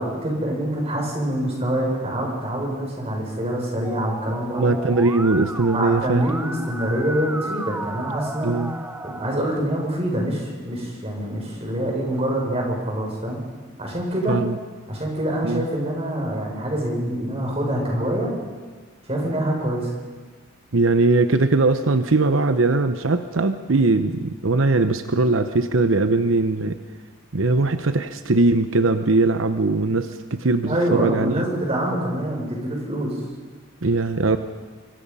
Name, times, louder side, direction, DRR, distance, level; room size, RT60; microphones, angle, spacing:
voice 1, 0.0-4.7 5.7-8.6 9.0-13.4 13.8-14.4 14.9-18.3 19.1-19.9 30.6-33.1, right 1 dB, 30° right, -1 dB, 6.8 m, -25 dB
Musical instrument, 3.8-9.4, right 2 dB, 10° right, 0.8 m, -34 dB
voice 2, 4.6-6.3 8.4-8.7 14.3-14.6 15.4-15.6 20.7-26.8 27.3-31.4 33.8-34.4, right 3 dB, 85° right, 9 dB, 0.9 m, -20 dB
26.5 x 24.5 x 5.6 m, 1.4 s
head